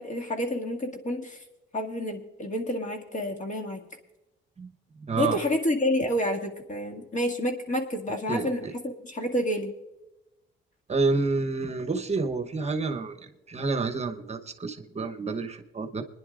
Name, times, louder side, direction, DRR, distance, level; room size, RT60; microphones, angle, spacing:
voice 1, 0.0-1.4 1.7-3.8 5.2-9.7, left 1 dB, 40° left, 2 dB, 2.1 m, -29 dB
voice 2, 5.1-5.4 8.3-8.5 10.9-16.0, right 3 dB, 35° right, 7 dB, 1.0 m, -29 dB
26.5 x 10.5 x 2.5 m, 0.96 s
cardioid pair, 90°, 20 cm